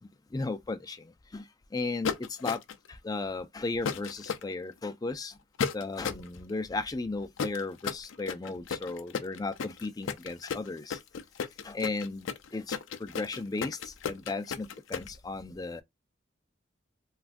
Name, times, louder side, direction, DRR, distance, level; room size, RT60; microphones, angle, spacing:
voice 1, 0.3-2.6 2.9-5.4 5.7-11.0 11.6-15.8, left 3 dB, 20° left, 0.3 m, -35 dB
sound 1, 2.0-2.9 3.9-4.4 5.6-6.3 7.4-15.1, left 6 dB, 80° left, 0.4 m, -33 dB
3.4 x 2.4 x 2.5 m
head